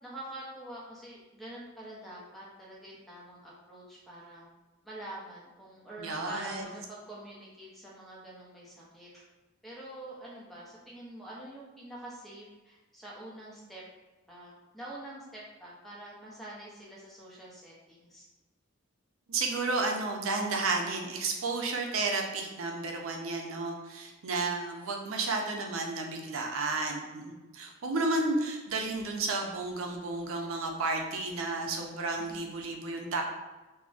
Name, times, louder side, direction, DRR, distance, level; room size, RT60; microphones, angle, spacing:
voice 1, 0.0-4.4 4.8-9.2 9.6-13.8 14.3-18.3 32.2-32.4, right 1 dB, ahead, -6 dB, 0.5 m, -46 dB
voice 2, 6.0-6.7 19.3-33.2, right 3 dB, 80° right, 2 dB, 0.5 m, -32 dB
3.7 x 2.0 x 2.4 m, 1.2 s
head